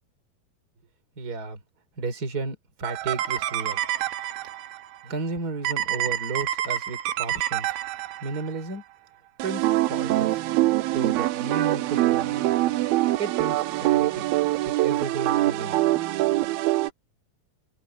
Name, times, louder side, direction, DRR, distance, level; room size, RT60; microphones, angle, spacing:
voice 1, 1.2-1.6 2.0-3.8 4.4-4.5 5.0-7.8 8.2-8.8 9.4-10.4 10.9-12.4 13.2-14.3 14.6-15.9, right 4 dB, 25° right, 3.9 m, -33 dB
sound 1, 2.8-4.8 5.6-8.5 9.4-16.9, right 16 dB, 80° right, 2.6 m, -25 dB
open air
omnidirectional pair, 4.4 m